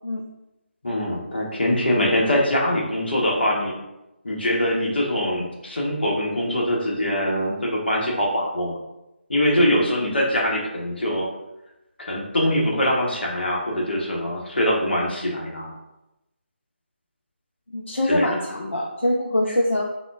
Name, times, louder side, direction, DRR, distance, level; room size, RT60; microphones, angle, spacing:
voice 1, 0.8-3.8 4.2-8.8 9.3-11.3 12.0-15.7 18.1-18.3, equal, 55° left, -3 dB, 0.9 m, -23 dB
voice 2, 17.7-19.8, left 1 dB, 70° left, -2 dB, 0.4 m, -23 dB
3.7 x 2.1 x 2.3 m, 0.94 s
figure-of-eight pair, 155°, 6 cm